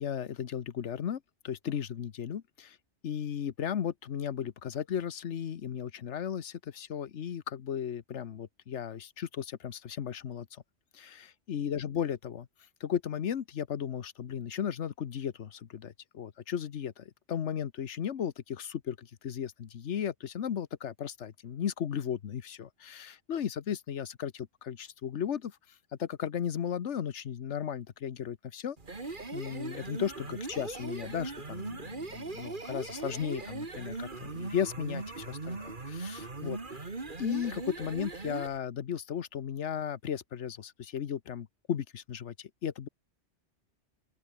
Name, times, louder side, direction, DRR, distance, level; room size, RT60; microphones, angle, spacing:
voice 1, 0.0-2.8 3.0-10.6 10.9-12.5 12.8-25.6 26.0-28.8 29.0-36.8 37.2-42.9, left 8 dB, 80° left, 1.3 m, -35 dB
sound 1, 28.8-38.6, right 3 dB, 45° right, 2.4 m, -39 dB
open air
omnidirectional pair, 1.2 m